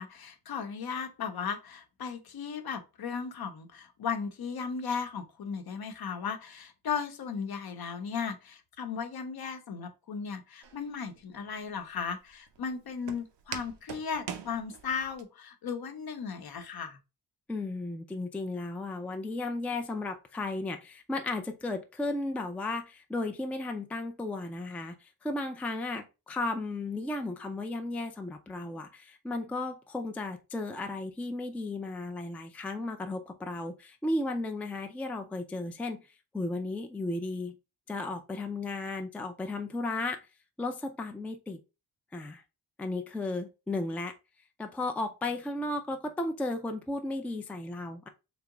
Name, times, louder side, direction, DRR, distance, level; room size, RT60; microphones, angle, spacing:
voice 1, 0.0-17.0, left 6 dB, 60° left, 0.8 m, -36 dB
Walk footsteps, 10.6-15.2, right 8 dB, 85° right, 0.7 m, -44 dB
voice 2, 17.5-36.0 36.3-37.5 37.9-40.3 40.6-41.6 42.1-42.4 42.8-44.1 44.6-48.1, left 2 dB, 5° left, 0.4 m, -34 dB
3.4 x 2.9 x 3.6 m
cardioid pair, 105°, 41 cm